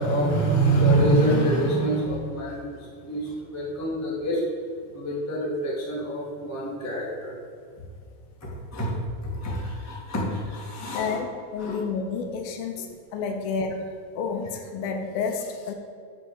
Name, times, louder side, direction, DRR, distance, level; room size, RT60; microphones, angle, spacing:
voice 1, 0.0-4.4 4.9-7.4 8.4-8.9 9.2-11.2 11.6-11.8, right 2 dB, 15° left, -5 dB, 0.5 m, -25 dB
voice 2, 10.9-15.7, left 5 dB, 75° left, 4 dB, 2.5 m, -30 dB
9.5 x 4.9 x 7.0 m, 2.1 s
omnidirectional pair, 4.4 m